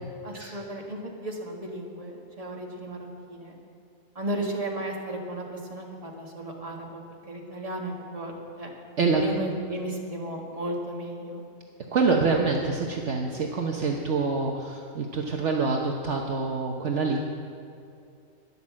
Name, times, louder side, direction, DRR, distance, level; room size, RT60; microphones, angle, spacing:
voice 1, 0.2-3.0 3.3-3.5 4.2-7.0 7.3-8.7 9.1-11.4, right 1 dB, 25° right, -1 dB, 1.9 m, -34 dB
voice 2, 11.9-17.2, right 4 dB, 60° right, 1 dB, 1.2 m, -26 dB
12.5 x 11.0 x 7.4 m, 2.5 s
omnidirectional pair, 1.5 m